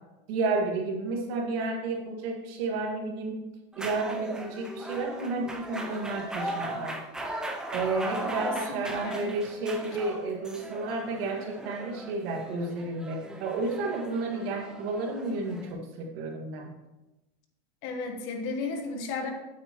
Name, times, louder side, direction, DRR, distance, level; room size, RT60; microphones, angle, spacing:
voice 1, 0.3-3.4 3.8-7.0 7.7-16.7, right 3 dB, 75° right, 1 dB, 2.0 m, -31 dB
sound 1, 3.7-15.7, right 1 dB, 5° right, 0.4 m, -38 dB
voice 2, 8.4-9.3 17.8-19.3, left 3 dB, 45° left, 5 dB, 1.3 m, -34 dB
8.8 x 8.6 x 3.0 m, 1.0 s
supercardioid pair, 175°, 30 cm